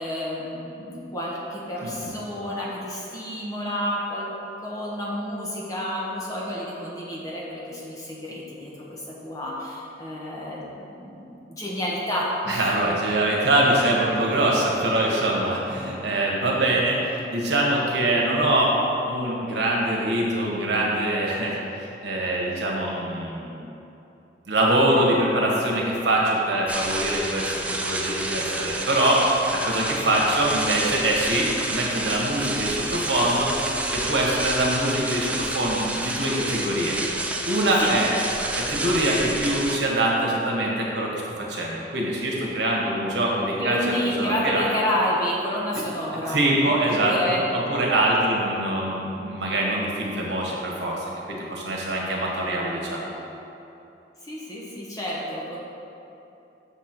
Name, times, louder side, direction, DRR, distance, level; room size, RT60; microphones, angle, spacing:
voice 1, 0.0-4.3 4.6-12.6 37.8-37.9 43.6-47.4 54.2-55.6, equal, 20° left, -5 dB, 1.1 m, -30 dB
voice 2, 12.5-18.7 19.1-23.6 24.5-27.5 27.8-33.5 33.9-37.0 37.5-38.1 38.5-44.6 46.3-53.1, right 1 dB, 65° right, -3 dB, 1.3 m, -24 dB
sound 1, 26.7-39.8, right 2 dB, 5° right, 0.3 m, -29 dB
6.9 x 4.2 x 6.0 m, 2.9 s
head